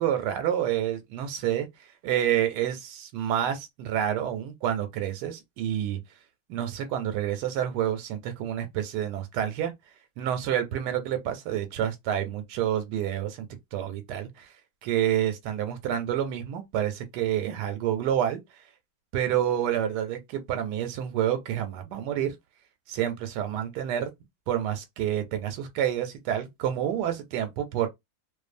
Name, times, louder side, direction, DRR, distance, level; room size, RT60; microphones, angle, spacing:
voice 1, 0.0-1.7 2.0-6.0 6.5-9.7 10.2-14.5 14.8-18.4 19.1-22.3 22.9-24.1 24.5-27.9, right 10 dB, 90° right, 1.2 m, -28 dB
2.6 x 2.3 x 2.4 m
omnidirectional pair, 1.7 m